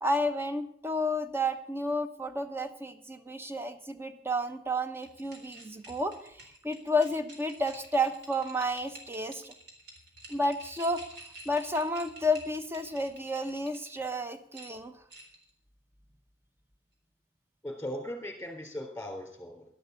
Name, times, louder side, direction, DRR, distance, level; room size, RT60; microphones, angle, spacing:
voice 1, 0.0-9.5 10.3-11.0 11.4-14.9, equal, 15° right, 9 dB, 1.0 m, -31 dB
sound 1, 5.0-14.1 14.5-15.5, right 1 dB, 65° right, 3.8 m, -50 dB
voice 2, 17.6-19.6, left 1 dB, 10° left, 2 dB, 3.7 m, -38 dB
12.0 x 11.5 x 6.9 m, 0.65 s
head